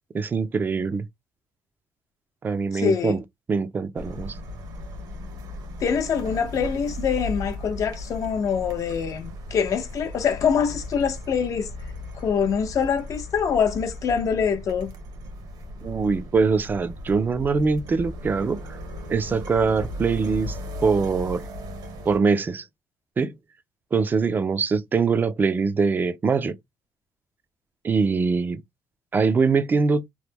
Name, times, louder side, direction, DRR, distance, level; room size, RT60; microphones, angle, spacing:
voice 1, 0.1-1.1 2.4-3.2 3.5-4.4 15.8-18.8 19.1-20.6 20.8-21.4 22.1-22.6 23.2-23.3 23.9-26.5 27.8-28.6 29.1-30.0, right 4 dB, 30° right, 0.4 m, -23 dB
voice 2, 2.7-3.2 5.8-11.7 12.1-14.9, left 6 dB, 55° left, 0.6 m, -24 dB
sound 1, 4.0-22.2, left 1 dB, 75° right, 1.1 m, -36 dB
3.0 x 2.1 x 3.4 m
cardioid pair, 125°, 7 cm